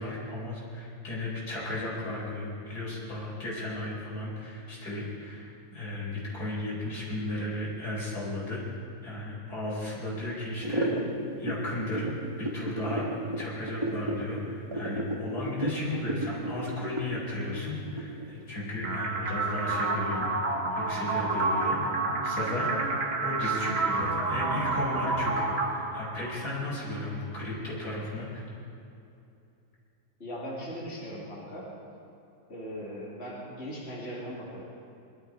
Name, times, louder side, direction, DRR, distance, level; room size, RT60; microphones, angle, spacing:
voice 1, 0.0-8.6 9.0-10.9 11.4-13.1 13.4-20.3 20.7-22.7 23.2-28.4, left 2 dB, 75° left, -5 dB, 5.1 m, -35 dB
sound 1, 10.6-18.4, right 1 dB, 20° right, 1.5 m, -33 dB
sound 2, 18.8-26.8, right 3 dB, 45° right, 1.3 m, -29 dB
voice 2, 30.2-31.7 32.5-34.6, equal, 40° left, -6 dB, 2.8 m, -39 dB
22.5 x 12.5 x 4.8 m, 2.7 s
omnidirectional pair, 1.7 m